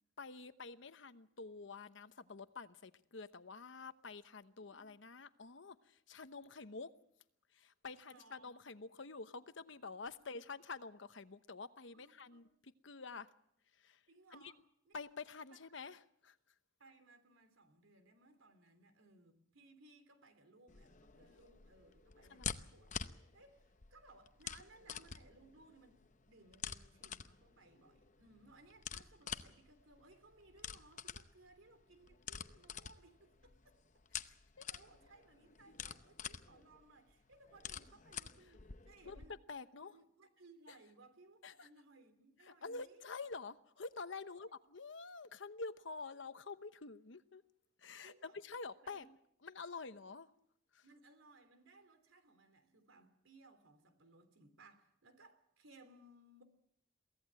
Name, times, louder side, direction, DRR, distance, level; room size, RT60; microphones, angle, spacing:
voice 1, 0.2-6.9 7.5-13.3 13.7-14.0 14.3-14.5 14.9-16.4 22.3-22.5 34.6-34.7 39.1-39.2 39.5-40.0 40.7-40.8 41.4-41.7 42.4-47.4 47.8-49.2 49.4-50.3 50.7-50.8, left 4 dB, 65° left, 1.0 m, -48 dB
voice 2, 4.6-4.9 8.0-8.5 11.9-12.4 14.1-14.6 14.8-14.9 16.8-22.9 23.3-33.8 34.1-34.2 34.6-39.3 39.8-43.1 44.3-44.5 48.0-48.4 48.9-49.1 50.8-56.4, right 2 dB, 85° right, 3.3 m, -63 dB
sound 1, 20.7-39.3, left 7 dB, 40° left, 0.8 m, -48 dB
23.0 x 16.5 x 7.6 m
head